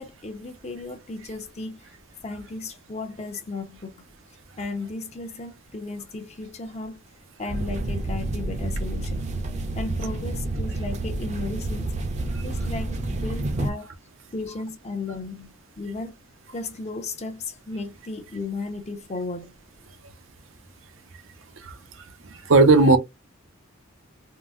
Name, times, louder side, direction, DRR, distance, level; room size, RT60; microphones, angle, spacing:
voice 1, 0.0-1.8 2.2-4.1 4.6-7.0 7.4-9.3 9.8-11.9 12.4-13.9 14.3-16.2 16.5-19.5, left 3 dB, 35° left, 0.6 m, -35 dB
sound 1, 7.5-13.7, right 2 dB, 35° right, 0.6 m, -29 dB
voice 2, 22.2-23.0, right 3 dB, 70° right, 0.7 m, -17 dB
3.8 x 2.0 x 2.4 m
head